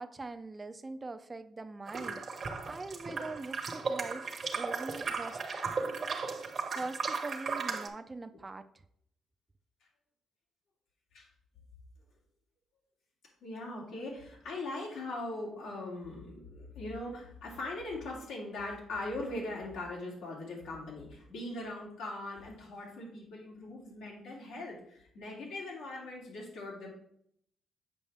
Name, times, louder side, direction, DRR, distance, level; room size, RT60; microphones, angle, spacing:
voice 1, 0.0-5.4 6.7-8.7, right 3 dB, 25° right, 10 dB, 0.4 m, -42 dB
sound 1, 1.9-7.9, right 4 dB, 45° right, 0.9 m, -36 dB
voice 2, 5.5-5.8 11.1-11.3 13.4-26.9, left 2 dB, 85° left, -3 dB, 2.6 m, -40 dB
7.2 x 5.2 x 3.4 m, 0.69 s
cardioid pair, 90°, 0 cm